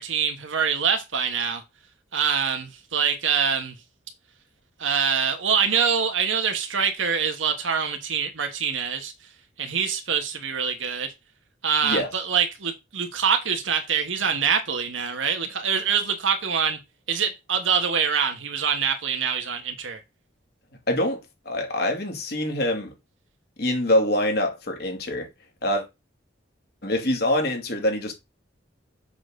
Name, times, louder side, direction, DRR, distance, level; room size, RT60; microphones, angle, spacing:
voice 1, 0.0-1.6 2.1-3.7 4.8-9.1 9.6-11.1 11.6-16.8 17.1-20.0, right 6 dB, 85° right, 1.3 m, -25 dB
voice 2, 20.9-21.2 21.5-22.9 23.6-25.3 25.6-25.8 26.8-28.2, left 1 dB, 55° left, 2.5 m, -24 dB
7.4 x 4.0 x 6.4 m
head